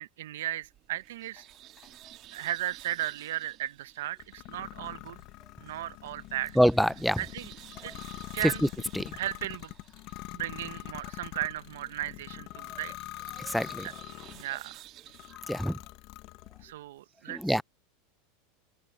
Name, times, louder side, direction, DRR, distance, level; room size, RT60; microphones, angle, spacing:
voice 1, 0.0-1.4 2.3-5.2 5.6-6.6 7.2-7.5 7.8-7.9 8.3-8.6 9.1-9.7 10.3-12.9 13.8-13.9 14.4-14.8 16.6-17.6, right 14 dB, 80° right, 0.8 m, -36 dB
sound 1, 0.6-15.3, right 14 dB, 45° right, 1.4 m, -53 dB
sound 2, 1.3-2.5 3.3-11.7 12.0-12.1 12.2-12.5, left 10 dB, 30° left, 7.8 m, -67 dB
sound 3, 4.2-14.5 15.1-16.7, left 20 dB, 55° left, 1.0 m, -44 dB
voice 2, 6.6-7.2 8.9-9.1 13.4-13.9 15.5-15.8 17.3-17.6, equal, ahead, 0.4 m, -26 dB
open air
supercardioid pair, 130°, 0 cm